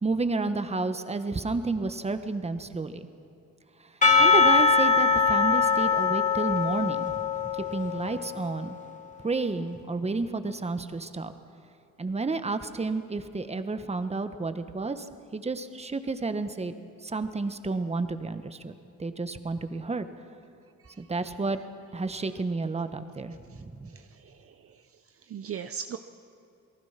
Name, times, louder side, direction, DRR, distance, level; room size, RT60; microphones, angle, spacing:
voice 1, 0.0-3.0 4.2-8.7 9.2-11.3 12.0-15.0 15.3-16.7 17.0-20.1 21.0-21.6 21.9-23.9, right 3 dB, 20° right, 9 dB, 1.3 m, -31 dB
Percussion / Church bell, 4.0-8.6, left 5 dB, 25° left, 2.4 m, -22 dB
voice 2, 23.9-24.5 25.3-26.0, right 8 dB, 50° right, 9 dB, 0.8 m, -38 dB
28.5 x 19.0 x 5.9 m, 2.8 s
cardioid pair, 90°, 30 cm